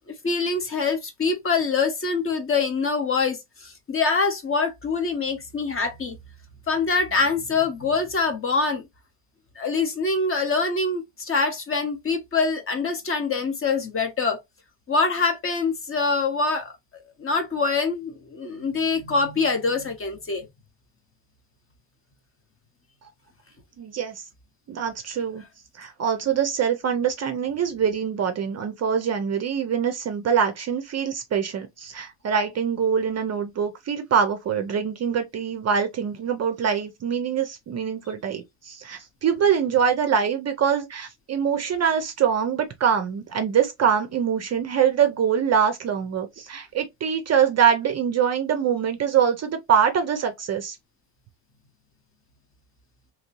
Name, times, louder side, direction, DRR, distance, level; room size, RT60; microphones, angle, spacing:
voice 1, 0.1-6.2 6.7-8.9 9.6-14.4 14.9-16.7 17.2-20.5, left 4 dB, 30° left, 0.7 m, -24 dB
voice 2, 23.8-24.2 24.7-25.4 25.8-50.8, right 7 dB, 35° right, 0.5 m, -24 dB
2.9 x 2.6 x 2.9 m
cardioid pair, 120°, 47 cm